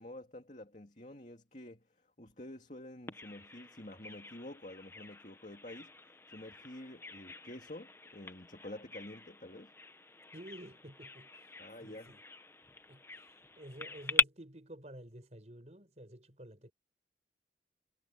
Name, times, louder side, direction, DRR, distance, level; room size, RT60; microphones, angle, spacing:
voice 1, 0.0-1.8 2.2-5.9 6.3-9.7 11.6-12.2, left 1 dB, 45° left, 2.6 m, -49 dB
Bird vocalization bird call bird song, 3.1-14.2, left 3 dB, 15° left, 0.9 m, -40 dB
voice 2, 10.3-11.5 11.8-12.2 12.9-13.0 13.6-16.7, right 1 dB, 40° right, 4.5 m, -51 dB
head